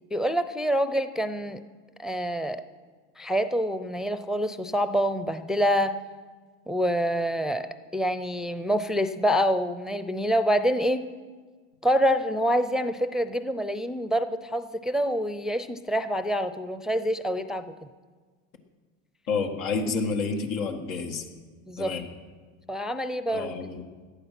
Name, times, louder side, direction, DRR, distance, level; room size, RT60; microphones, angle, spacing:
voice 1, 0.1-1.6 2.0-2.6 3.2-6.0 6.7-11.1 11.8-17.7 21.7-21.9 22.7-23.5, equal, ahead, 11 dB, 0.5 m, -26 dB
voice 2, 19.3-21.3 21.8-22.0 23.3-23.8, left 4 dB, 85° left, 4 dB, 2.0 m, -29 dB
17.5 x 11.5 x 5.9 m, 1.5 s
supercardioid pair, 100°, 41 cm